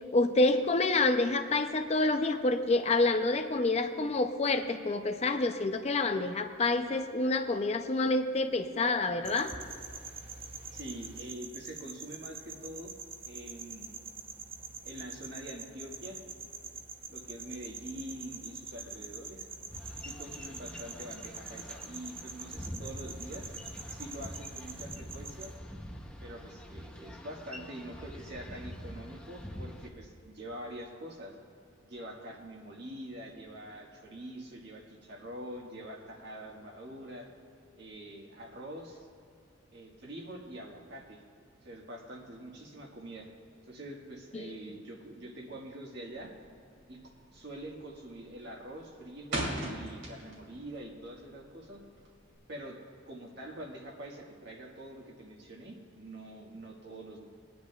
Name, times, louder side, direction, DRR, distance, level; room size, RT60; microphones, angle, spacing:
voice 1, 0.1-9.5 44.3-44.4, left 2 dB, 35° left, 7 dB, 0.5 m, -28 dB
sound 1, 9.2-25.6, right 4 dB, 30° right, 0.7 m, -45 dB
voice 2, 10.7-12.9 13.2-14.0 14.8-16.2 17.1-19.5 20.0-23.5 23.9-25.5 26.2-31.4 31.8-37.3 37.8-39.1 39.7-41.2 41.6-43.3 43.7-46.4 46.9-47.0 47.3-51.8 52.5-52.8 53.1-57.2, right 1 dB, 60° right, 0 dB, 1.6 m, -45 dB
Boat Water vehicle, 19.7-29.9, equal, 5° left, 0.7 m, -45 dB
sound 2, 46.1-46.5 46.8-47.1 47.5-47.9 48.2-50.6 50.9-52.4, right 1 dB, 85° right, 3.0 m, -37 dB
22.0 x 10.0 x 2.4 m, 2.4 s
head